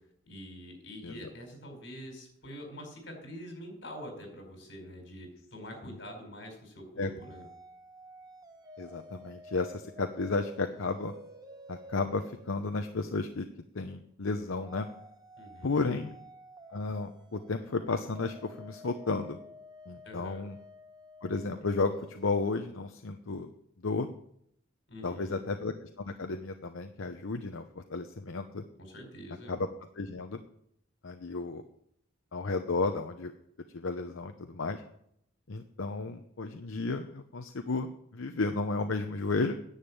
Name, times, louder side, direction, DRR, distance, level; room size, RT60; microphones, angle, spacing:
voice 1, 0.2-7.4 15.4-16.0 20.0-20.4 24.9-25.4 28.8-29.5, equal, 60° left, 3 dB, 4.9 m, -45 dB
sound 1, 7.2-13.4 14.6-22.6, equal, 20° right, 1.1 m, -51 dB
voice 2, 8.8-11.1 11.7-13.4 13.7-14.9 15.6-16.1 16.7-19.4 19.9-20.6 21.2-23.5 23.8-24.1 25.0-28.6 29.5-29.7 30.0-30.4 31.0-31.6 32.3-33.3 33.7-34.8 35.5-39.5, left 3 dB, 85° left, 6 dB, 0.8 m, -33 dB
10.0 x 7.3 x 8.7 m, 0.72 s
head